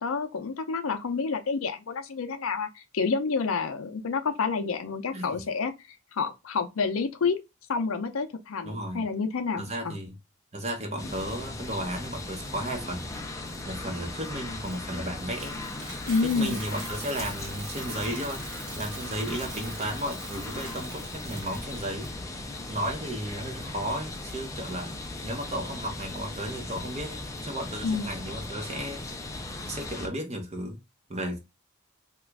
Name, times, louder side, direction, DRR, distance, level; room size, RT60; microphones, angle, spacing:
voice 1, 0.0-5.7 6.1-7.4 7.7-10.0 16.1-16.6 27.8-28.1, left 4 dB, 75° left, 0.5 m, -29 dB
voice 2, 5.1-5.4 8.6-9.0 9.6-10.2 10.5-13.1 13.6-15.6 16.2-18.4 18.8-22.1 22.7-24.9 25.2-29.3 29.6-30.8 31.1-31.4, right 1 dB, 30° right, 0.9 m, -34 dB
sound 1, 11.0-30.1, left 2 dB, 15° left, 0.4 m, -38 dB
Coin (dropping), 14.7-22.1, right 3 dB, 85° right, 1.3 m, -44 dB
2.9 x 2.4 x 3.4 m
head